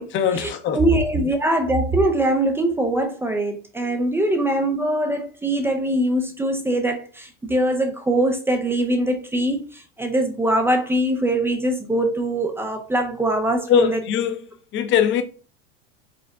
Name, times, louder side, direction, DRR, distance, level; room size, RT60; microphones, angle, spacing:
voice 1, 0.1-0.8 13.7-14.4 14.7-15.2, left 8 dB, 35° left, 0.7 m, -20 dB
voice 2, 0.7-14.0, right 1 dB, 5° right, 0.4 m, -22 dB
5.1 x 2.1 x 3.5 m
supercardioid pair, 130°, 37 cm